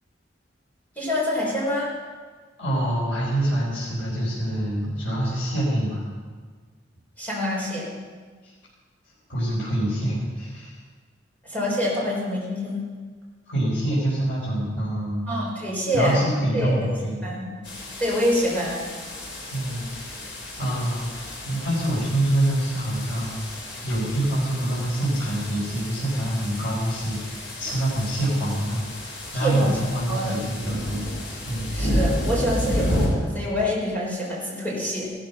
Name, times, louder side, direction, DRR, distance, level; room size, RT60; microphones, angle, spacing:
voice 1, 0.9-1.9 7.2-7.9 11.4-12.8 15.2-16.2 16.5-17.5 18.0-18.9 29.3-29.8 30.1-30.4 31.7-35.1, left 1 dB, 10° left, -5 dB, 4.6 m, -26 dB
voice 2, 2.6-6.0 8.4-8.5 9.3-10.8 13.5-15.2 15.9-17.2 19.5-20.2 20.6-23.5 23.8-31.1 31.4-31.7, right 1 dB, 80° left, -8 dB, 4.9 m, -26 dB
sound 1, 17.6-33.1, left 1 dB, 65° left, 4.6 m, -32 dB
15.5 x 13.5 x 5.8 m, 1.5 s
head